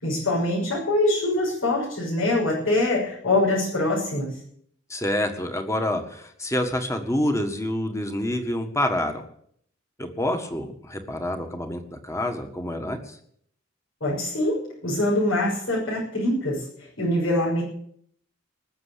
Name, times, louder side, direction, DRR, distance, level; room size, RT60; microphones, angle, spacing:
voice 1, 0.0-4.3 14.0-16.6 17.0-17.6, left 1 dB, 85° left, -5 dB, 6.4 m, -24 dB
voice 2, 4.9-9.2 10.0-13.2, left 1 dB, 15° left, 6 dB, 1.7 m, -27 dB
20.0 x 7.0 x 8.4 m, 0.66 s
head